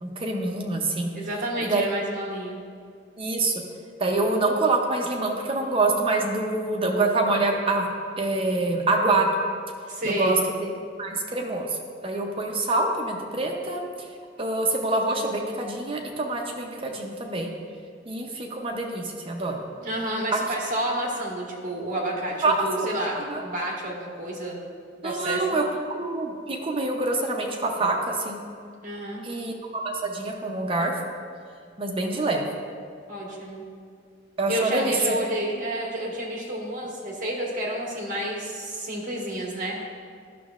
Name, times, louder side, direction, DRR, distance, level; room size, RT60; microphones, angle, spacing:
voice 1, 0.0-1.1 1.6-1.8 3.2-3.5 4.0-7.9 8.2-9.3 10.0-10.7 11.0-11.7 12.0-13.8 14.4-17.5 18.1-19.6 20.3-20.4 22.4-23.4 25.0-25.6 25.9-28.4 29.2-30.9 31.8-32.4 34.4-35.2, right 2 dB, 30° right, 1 dB, 0.7 m, -26 dB
voice 2, 1.1-2.6 9.9-10.4 19.5-24.6 25.0-25.4 28.8-29.2 33.1-33.6 34.5-39.8, right 1 dB, 45° right, -2 dB, 1.4 m, -30 dB
11.5 x 6.2 x 2.4 m, 2.1 s
head